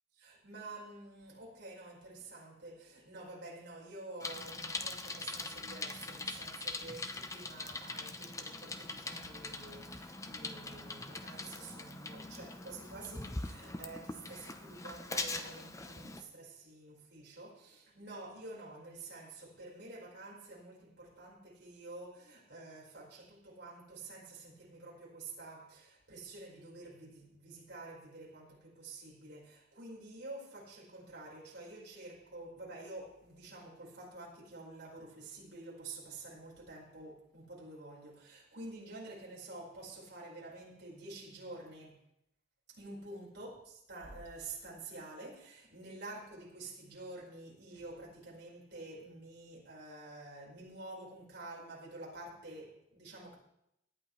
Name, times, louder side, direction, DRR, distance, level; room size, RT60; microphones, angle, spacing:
voice 1, 0.2-42.0 42.7-53.4, right 2 dB, 60° right, 5.0 m, -49 dB
Bicycle, 4.2-16.2, left 3 dB, 15° left, 0.8 m, -42 dB
18.0 x 11.0 x 3.3 m
head